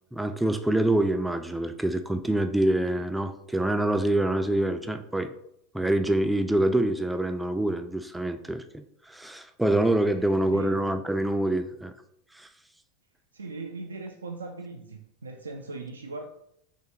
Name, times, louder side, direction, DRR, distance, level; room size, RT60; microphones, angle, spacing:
voice 1, 0.1-5.3 5.7-11.9 12.3-12.5, right 1 dB, 5° right, 8 dB, 0.4 m, -26 dB
voice 2, 10.2-10.7 13.3-16.3, right 3 dB, 80° right, 4 dB, 0.3 m, -39 dB
4.4 x 3.3 x 2.7 m, 0.74 s
figure-of-eight pair, 80°, 0 cm